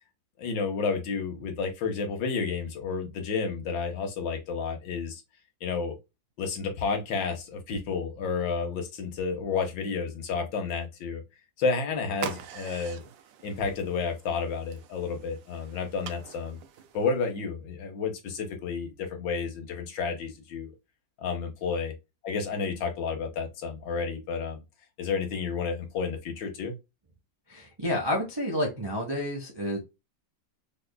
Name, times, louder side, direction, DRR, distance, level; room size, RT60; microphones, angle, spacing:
voice 1, 0.4-5.2 5.6-5.9 6.4-11.2 11.6-13.0 13.4-16.6 16.9-20.7 21.2-21.9 22.2-24.6 25.0-26.7, left 5 dB, 80° left, 1.6 m, -31 dB
sound 1, 12.1-17.3, right 9 dB, 90° right, 1.3 m, -44 dB
voice 2, 27.5-29.8, left 1 dB, 30° right, 0.4 m, -30 dB
4.6 x 2.4 x 2.2 m
omnidirectional pair, 2.0 m